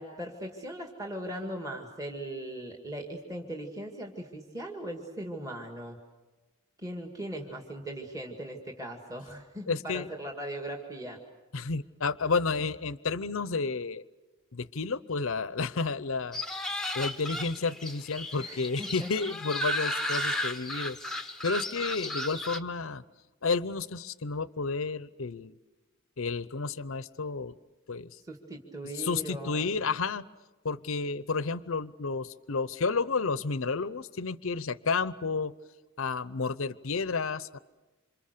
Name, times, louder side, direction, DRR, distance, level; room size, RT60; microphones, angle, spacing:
voice 1, 0.0-6.0 6.8-11.2 18.3-19.1 28.2-29.7, right 1 dB, 15° right, 1 dB, 2.1 m, -39 dB
voice 2, 9.7-10.1 11.5-14.0 14.5-16.4 16.9-21.0 21.4-23.0 23.4-25.5 26.2-27.5 27.9-28.2 28.9-30.2 30.6-35.5 36.0-37.6, left 4 dB, 65° left, 17 dB, 0.8 m, -31 dB
sound 1, 16.3-22.6, left 1 dB, ahead, 1.0 m, -34 dB
28.0 x 26.5 x 6.8 m, 1.2 s
head